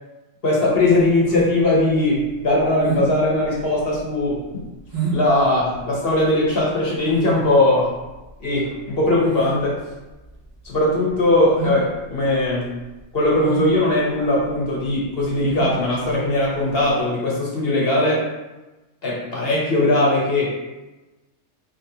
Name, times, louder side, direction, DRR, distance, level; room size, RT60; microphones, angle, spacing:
voice 1, 0.4-4.5 5.1-7.9 8.4-9.8 10.6-12.7 13.1-18.3 19.0-20.6, left 1 dB, 45° left, -4 dB, 1.2 m, -19 dB
sound 1, 0.7-17.0, right 4 dB, 35° right, 1.1 m, -31 dB
4.1 x 3.1 x 4.0 m, 1.1 s
omnidirectional pair, 1.5 m